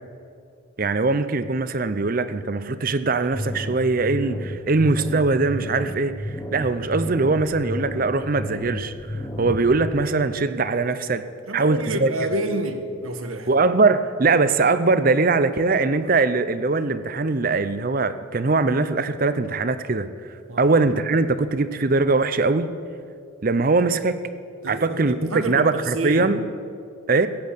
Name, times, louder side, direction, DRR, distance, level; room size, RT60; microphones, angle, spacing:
voice 1, 0.8-11.3 11.5-12.1 13.5-22.7 23.4-24.2 24.7-26.4 27.1-27.3, right 3 dB, 40° right, 13 dB, 0.6 m, -21 dB
sound 1, 3.3-9.9, equal, 15° left, 1.0 m, -32 dB
voice 2, 11.5-13.5 20.5-20.7 24.6-26.3, right 2 dB, 85° right, 7 dB, 1.3 m, -29 dB
16.0 x 8.6 x 8.0 m, 2.5 s
head